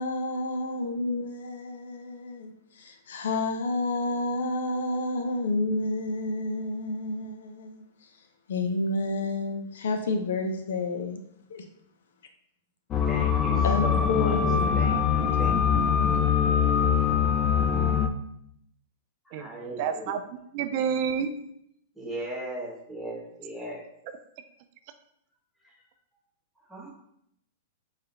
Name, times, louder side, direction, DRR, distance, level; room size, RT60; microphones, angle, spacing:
voice 1, 0.0-7.8 8.5-11.2 11.5-11.6 13.6-14.8, left 2 dB, 80° left, 5 dB, 0.5 m, -30 dB
sound 1, 12.9-18.1, left 7 dB, 30° left, 0.4 m, -23 dB
voice 2, 13.1-14.4 14.7-15.9 19.2-20.1 22.0-23.8 25.6-25.7 26.7-26.9, right 1 dB, ahead, -4 dB, 1.2 m, -38 dB
voice 3, 19.3-21.3, right 7 dB, 50° right, 8 dB, 0.3 m, -29 dB
3.3 x 2.7 x 3.9 m, 0.73 s
hypercardioid pair, 125°, 0 cm